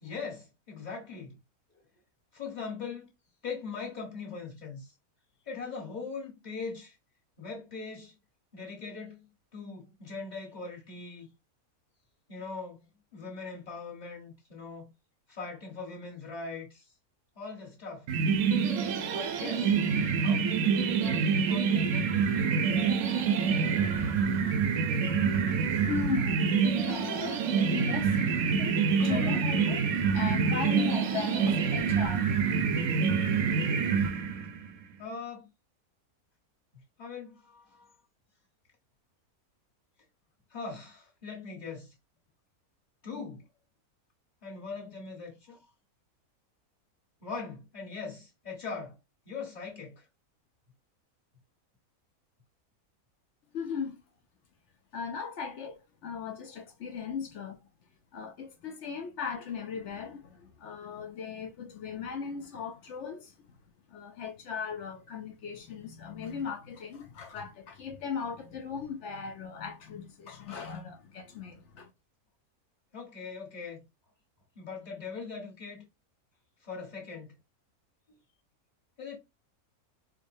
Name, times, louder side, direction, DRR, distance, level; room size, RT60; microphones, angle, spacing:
voice 1, 0.0-1.4 2.3-3.1 3.4-4.9 5.5-6.9 7.4-8.1 8.5-9.3 9.5-11.3 12.3-12.9 13.1-14.9 15.3-16.9 17.3-18.1 19.0-19.7 20.2-22.6 35.0-35.5 37.0-37.9 40.5-41.9 43.0-43.4 44.4-45.6 47.2-49.0 49.2-49.9 72.9-73.8 74.5-75.8 76.6-77.3 79.0-79.2, left 4 dB, 30° left, 1.4 m, -41 dB
sound 1, 18.1-34.7, right 6 dB, 70° right, 0.9 m, -26 dB
voice 2, 25.7-26.5 26.8-32.3 53.5-54.0 54.9-57.6 58.1-63.3 63.9-71.9, left 6 dB, 60° left, 0.8 m, -38 dB
4.8 x 2.2 x 2.6 m
omnidirectional pair, 1.6 m